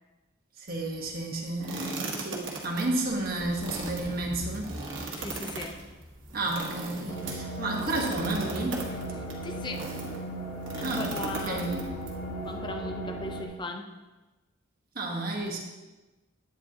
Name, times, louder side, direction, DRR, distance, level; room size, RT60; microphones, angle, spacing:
voice 1, 0.6-4.7 6.3-8.8 10.8-11.9 14.9-15.6, right 2 dB, 45° right, 0 dB, 1.5 m, -31 dB
sound 1, 0.8-13.5, left 1 dB, 60° left, 2.7 m, -47 dB
sound 2, 1.6-10.2 10.6-12.1, right 3 dB, 60° right, 1.6 m, -38 dB
voice 2, 5.1-5.9 9.2-9.9 10.7-11.7 12.4-14.0, left 2 dB, 20° left, 5 dB, 0.7 m, -38 dB
sound 3, 7.1-13.5, right 1 dB, 40° left, 1.4 m, -37 dB
11.0 x 9.1 x 3.0 m, 1.1 s
head